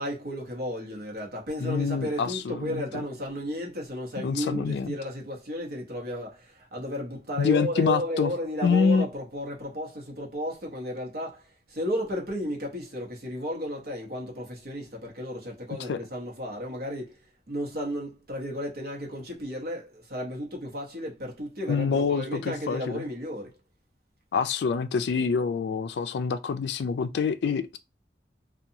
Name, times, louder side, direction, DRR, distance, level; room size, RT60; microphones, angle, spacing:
voice 1, 0.0-17.2 17.5-23.5, equal, 55° right, 0.8 m, -33 dB
voice 2, 1.6-3.0 4.2-4.9 7.4-8.3 8.6-9.1 15.9-16.0 21.7-23.0 24.3-27.8, left 5 dB, 75° left, 0.3 m, -26 dB
2.7 x 2.3 x 2.6 m
head